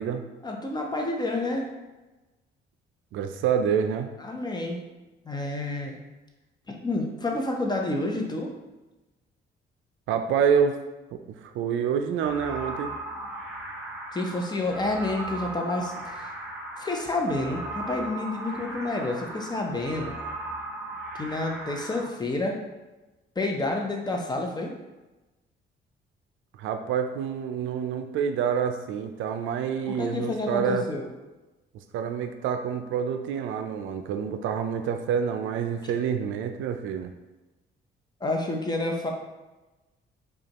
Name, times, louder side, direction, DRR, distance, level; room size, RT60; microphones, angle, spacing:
voice 1, 0.4-1.6 4.2-4.8 5.2-6.0 6.7-8.5 14.1-16.3 16.8-20.1 21.2-22.6 23.4-24.7 29.9-31.1 38.2-39.1, left 2 dB, 20° left, 1 dB, 0.7 m, -29 dB
voice 2, 3.1-4.1 10.1-10.8 11.4-12.9 26.6-30.9 31.9-37.1, right 7 dB, 80° right, 7 dB, 0.4 m, -27 dB
sound 1, 12.2-22.0, right 2 dB, 5° right, 0.8 m, -37 dB
5.0 x 2.3 x 2.9 m, 1.1 s
cardioid pair, 90°, 20 cm